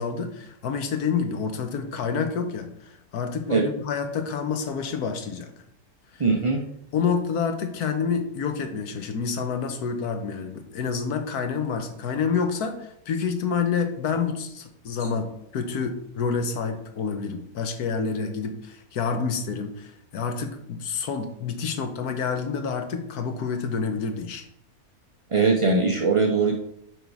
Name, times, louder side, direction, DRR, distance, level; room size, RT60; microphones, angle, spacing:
voice 1, 0.0-5.5 6.1-6.2 6.9-24.5, left 5 dB, 85° left, 7 dB, 1.4 m, -28 dB
voice 2, 6.2-6.6 15.0-15.1 25.3-26.5, right 4 dB, 55° right, 0 dB, 0.3 m, -21 dB
6.4 x 5.3 x 4.6 m, 0.75 s
omnidirectional pair, 1.6 m